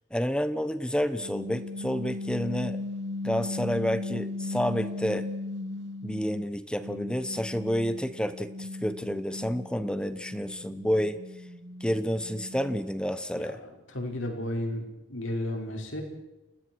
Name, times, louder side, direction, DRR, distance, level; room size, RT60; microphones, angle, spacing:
voice 1, 0.1-2.8 3.2-5.3 6.0-11.2 11.8-13.6, equal, 5° left, 12 dB, 1.0 m, -29 dB
sound 1, 1.2-6.4 6.8-13.0, left 2 dB, 60° right, 2.0 m, -37 dB
voice 2, 13.9-16.0, left 1 dB, 85° left, 2 dB, 5.7 m, -33 dB
29.5 x 20.0 x 4.7 m, 0.97 s
head